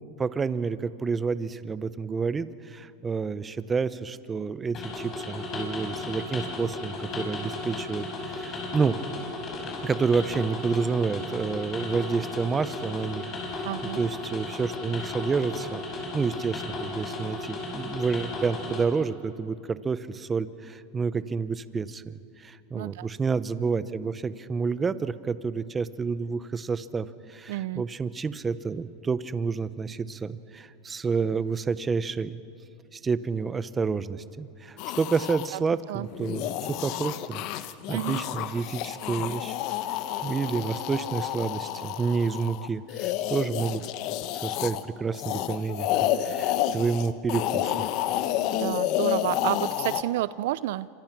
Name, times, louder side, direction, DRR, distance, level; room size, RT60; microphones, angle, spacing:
voice 1, 0.0-9.0 9.8-13.6 14.0-32.4 32.9-37.4 37.9-39.6 40.2-43.8 44.4-47.9, right 5 dB, 20° right, 15 dB, 0.9 m, -29 dB
sound 1, 4.7-18.8, left 2 dB, 35° left, 6.2 m, -35 dB
voice 2, 13.6-14.0 22.7-23.1 27.5-27.8 35.5-35.6 35.9-36.1 37.9-38.2 48.5-50.9, right 15 dB, 70° right, 18 dB, 0.5 m, -30 dB
sound 2, 34.8-35.5 36.1-44.8 45.1-50.0, left 12 dB, 55° left, 1.1 m, -30 dB
27.0 x 26.0 x 6.1 m, 2.6 s
supercardioid pair, 125°, 0 cm